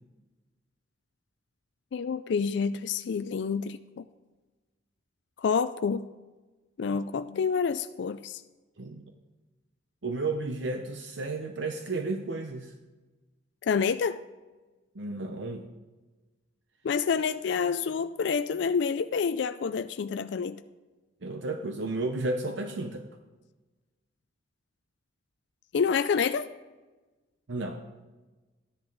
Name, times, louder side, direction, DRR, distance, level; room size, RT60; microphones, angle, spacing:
voice 1, 1.9-4.1 5.4-6.1 6.8-8.4 13.6-14.2 16.8-20.6 25.7-26.5, left 6 dB, 65° left, 11 dB, 0.4 m, -28 dB
voice 2, 8.8-9.1 10.0-12.7 14.9-15.7 21.2-23.1 27.5-27.8, right 2 dB, 65° right, 5 dB, 0.7 m, -33 dB
13.0 x 10.5 x 4.0 m, 1.2 s
head